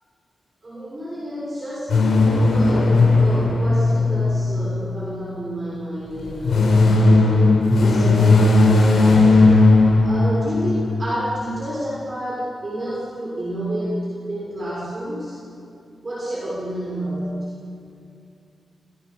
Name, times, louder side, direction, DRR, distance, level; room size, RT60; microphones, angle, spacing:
voice 1, 0.6-7.5 7.8-14.0 14.3-15.4 16.0-17.5, right 1 dB, 25° right, -7 dB, 6.6 m, -30 dB
sound 1, 1.9-5.3 6.2-11.0, left 2 dB, 85° left, 6.4 m, -16 dB
30.0 x 28.5 x 6.9 m, 2.5 s
wide cardioid pair, 175°, 0 cm